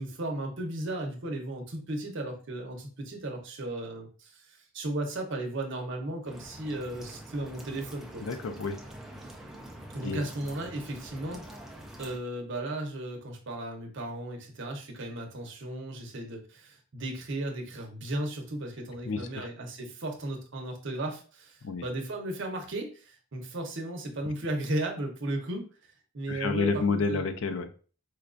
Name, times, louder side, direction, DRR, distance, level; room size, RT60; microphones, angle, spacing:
voice 1, 0.0-8.3 9.9-11.5 12.0-27.3, right 1 dB, 55° right, 2 dB, 0.7 m, -35 dB
sound 1, 6.2-12.2, right 1 dB, ahead, 0.3 m, -46 dB
voice 2, 8.2-8.8 10.0-10.2 19.1-19.5 21.6-21.8 26.3-27.8, left 4 dB, 65° left, 8 dB, 0.4 m, -29 dB
4.4 x 2.3 x 2.4 m, 0.39 s
head